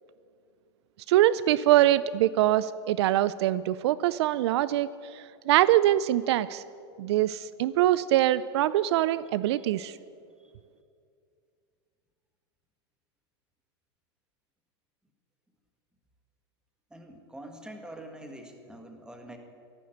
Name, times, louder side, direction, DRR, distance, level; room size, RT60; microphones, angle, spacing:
voice 1, 1.1-6.6 7.0-10.0, right 13 dB, 70° right, 17 dB, 0.4 m, -24 dB
voice 2, 16.9-19.4, right 1 dB, 5° right, 4 dB, 1.6 m, -45 dB
13.5 x 11.5 x 8.0 m, 2.3 s
supercardioid pair, 135°, 15 cm